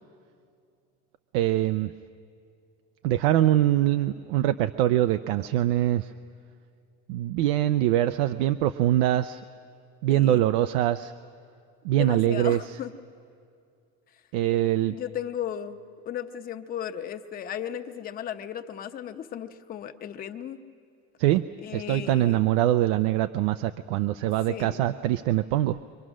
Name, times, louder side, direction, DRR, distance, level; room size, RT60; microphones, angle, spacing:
voice 1, 1.3-1.9 3.0-6.1 7.1-9.4 10.0-11.1 11.8-12.8 14.3-15.0 21.2-21.4 21.7-25.8, right 13 dB, 90° right, 10 dB, 0.6 m, -23 dB
voice 2, 10.1-10.5 12.0-12.9 14.9-15.8 16.1-20.6 21.6-22.5 24.5-24.9, left 9 dB, 30° left, 7 dB, 0.8 m, -35 dB
29.0 x 25.0 x 6.3 m, 2.4 s
cardioid pair, 165°, 30 cm